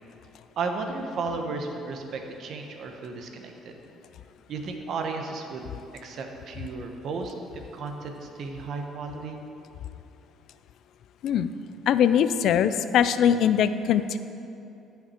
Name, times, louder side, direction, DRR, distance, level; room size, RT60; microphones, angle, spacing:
voice 1, 0.6-3.8 4.5-5.7 6.0-7.3 7.7-9.4, right 4 dB, 60° right, 4 dB, 1.1 m, -34 dB
voice 2, 11.9-14.2, left 9 dB, 65° left, 12 dB, 0.4 m, -21 dB
13.5 x 5.8 x 4.4 m, 2.8 s
cardioid pair, 100°, 0 cm